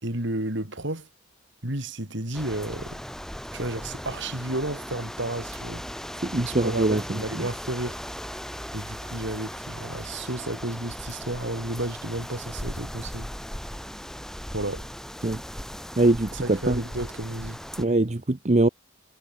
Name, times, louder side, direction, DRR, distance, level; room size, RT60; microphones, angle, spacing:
voice 1, 0.0-1.1 1.6-3.0 3.5-5.8 6.4-8.0 8.7-13.3 14.5-14.9 16.4-17.6, right 1 dB, 60° right, 4.2 m, -32 dB
sound 1, 2.3-17.8, equal, ahead, 3.2 m, -38 dB
voice 2, 6.2-7.0 15.2-15.4 16.0-16.8 17.8-18.7, right 2 dB, 35° right, 0.9 m, -22 dB
head